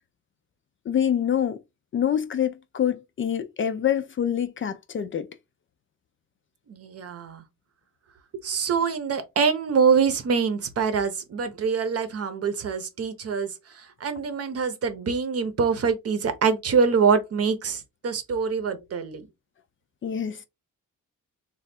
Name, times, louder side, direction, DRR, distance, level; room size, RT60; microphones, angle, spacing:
voice 1, 0.9-1.6 1.9-5.3 20.0-20.4, left 9 dB, 40° left, 0.4 m, -26 dB
voice 2, 6.7-7.4 8.4-19.3, right 5 dB, 50° right, 0.7 m, -25 dB
3.3 x 2.3 x 4.2 m
wide cardioid pair, 155°, 31 cm